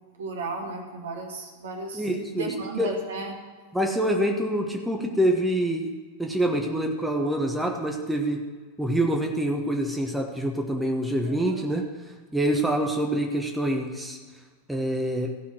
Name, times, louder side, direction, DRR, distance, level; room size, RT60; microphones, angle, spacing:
voice 1, 0.2-2.0 2.3-3.3 11.3-11.7, right 3 dB, 65° right, 1 dB, 1.9 m, -34 dB
voice 2, 1.9-2.9 3.7-5.9 6.2-8.4 8.8-11.8 12.3-14.2 14.7-15.3, right 1 dB, 5° right, 1 dB, 1.1 m, -26 dB
15.5 x 5.7 x 6.1 m, 1.4 s
figure-of-eight pair, 90°, 0 cm